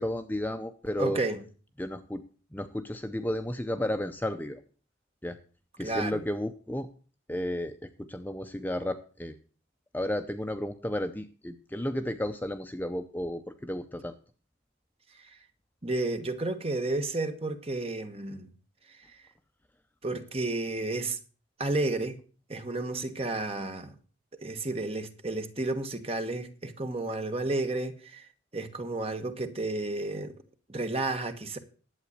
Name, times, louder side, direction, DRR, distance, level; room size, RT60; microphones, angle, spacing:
voice 1, 0.0-1.2 1.8-2.2 2.5-4.6 5.2-5.4 5.8-6.9 7.3-9.3 9.9-14.1, left 1 dB, 10° left, 0.6 m, -33 dB
voice 2, 1.0-1.4 5.8-6.2 15.8-18.5 20.0-21.2 21.6-22.2 22.5-23.9 24.4-28.2 28.5-30.4 30.7-31.6, right 2 dB, 30° right, 1.3 m, -32 dB
11.5 x 8.2 x 6.6 m
head